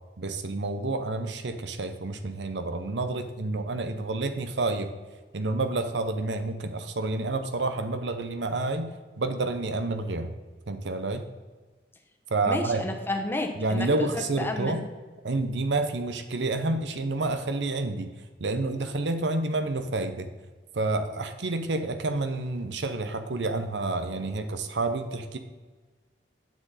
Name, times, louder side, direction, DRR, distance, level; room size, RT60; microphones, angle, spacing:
voice 1, 0.2-4.9 5.3-8.9 9.2-10.3 10.7-11.3 12.3-12.8 13.6-14.8 15.2-18.1 18.4-20.3 20.7-25.4, right 2 dB, 90° right, 8 dB, 0.8 m, -29 dB
voice 2, 12.5-14.8, left 2 dB, 15° left, 3 dB, 1.1 m, -31 dB
9.4 x 7.6 x 4.1 m, 1.4 s
head